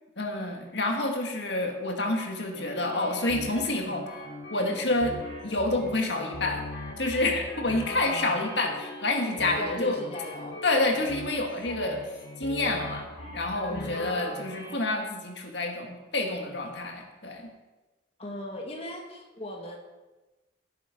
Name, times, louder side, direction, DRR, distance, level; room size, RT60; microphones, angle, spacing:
voice 1, 0.2-4.0 4.5-5.2 5.4-6.6 7.0-10.0 10.6-12.0 12.4-13.0 13.3-17.5, left 2 dB, 60° left, 2 dB, 2.0 m, -28 dB
sound 1, 2.5-14.7, equal, 85° left, 4.9 m, -40 dB
voice 2, 7.8-8.5 9.6-10.6 13.7-14.5 18.2-19.8, left 1 dB, 30° left, 0 dB, 1.7 m, -39 dB
17.0 x 8.7 x 5.2 m, 1.1 s
head